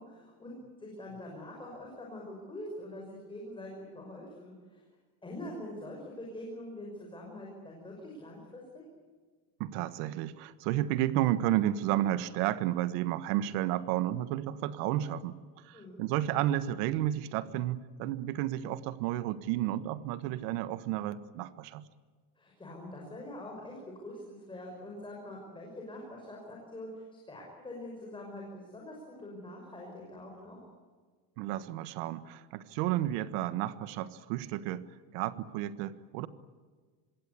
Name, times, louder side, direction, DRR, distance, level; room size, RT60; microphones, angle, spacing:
voice 1, 0.0-4.8 5.2-8.8 15.7-16.0 22.4-30.6, left 1 dB, 10° left, -1 dB, 5.8 m, -44 dB
voice 2, 9.6-21.8 31.4-34.9 35.1-36.3, right 13 dB, 70° right, 14 dB, 1.5 m, -32 dB
26.0 x 21.5 x 8.4 m, 1.5 s
cardioid pair, 165°, 50 cm